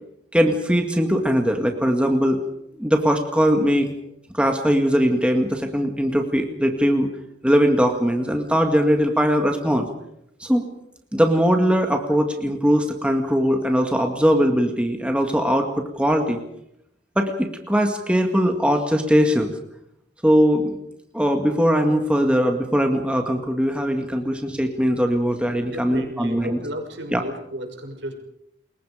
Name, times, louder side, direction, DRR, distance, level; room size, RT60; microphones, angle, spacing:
voice 1, 0.3-2.4 2.8-3.9 4.3-7.1 7.4-9.9 10.4-10.6 11.1-16.4 17.2-19.5 20.2-20.8 21.1-26.6 27.1-27.2, equal, 5° right, 3 dB, 2.0 m, -20 dB
voice 2, 25.7-28.1, right 1 dB, 75° right, 3 dB, 6.2 m, -33 dB
29.5 x 22.0 x 5.1 m, 0.80 s
head